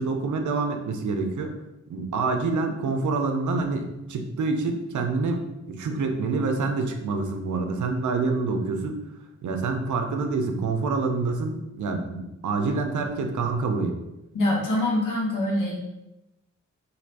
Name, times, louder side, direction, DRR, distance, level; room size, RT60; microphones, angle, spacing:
voice 1, 0.0-1.6 1.9-9.0 9.4-14.0, right 3 dB, 70° right, 4 dB, 0.5 m, -27 dB
voice 2, 14.3-15.7, left 1 dB, 80° left, -3 dB, 1.1 m, -24 dB
3.2 x 2.7 x 2.5 m, 0.95 s
cardioid pair, 50°, 31 cm